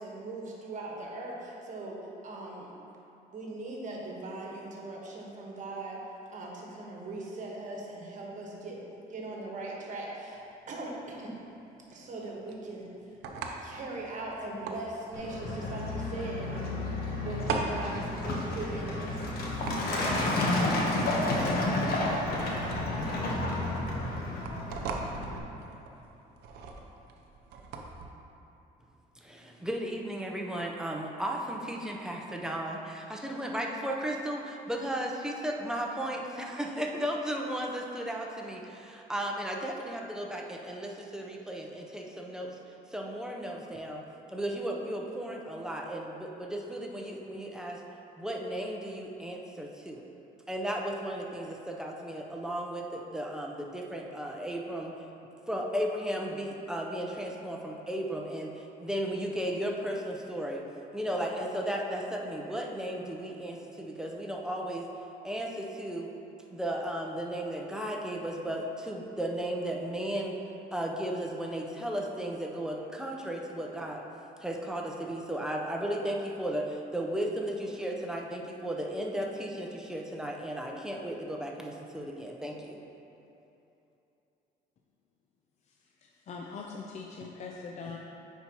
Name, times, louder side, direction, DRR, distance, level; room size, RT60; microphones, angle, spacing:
voice 1, 0.0-2.7 3.3-6.0 6.3-8.8 9.1-11.4 11.9-12.9 13.6-16.8 17.2-19.3, right 2 dB, 50° right, -2 dB, 1.2 m, -40 dB
sound 1, 10.3-28.1, right 4 dB, 80° right, 0.6 m, -42 dB
Truck, 15.1-25.4, left 2 dB, 65° left, 1.0 m, -31 dB
voice 2, 29.2-42.6 42.9-44.0 44.3-47.8 48.2-50.0 50.5-54.9 55.5-60.6 60.9-64.9 65.2-66.1 66.5-70.4 70.7-74.0 74.4-82.8, right 1 dB, 5° right, -1 dB, 0.6 m, -35 dB
voice 3, 86.0-88.0, left 4 dB, 45° left, -1 dB, 0.5 m, -41 dB
9.1 x 4.6 x 2.9 m, 2.9 s
cardioid pair, 110°, 17 cm